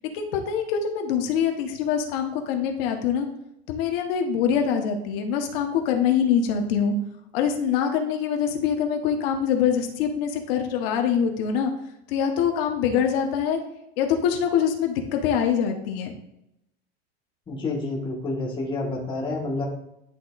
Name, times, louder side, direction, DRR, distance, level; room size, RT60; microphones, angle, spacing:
voice 1, 0.1-3.3 3.7-6.9 7.3-11.7 12.1-13.6 14.0-16.1, left 8 dB, 65° left, 4 dB, 1.1 m, -24 dB
voice 2, 17.5-19.6, left 2 dB, 15° left, -2 dB, 1.4 m, -29 dB
10.5 x 3.7 x 2.4 m, 0.83 s
supercardioid pair, 140°, 32 cm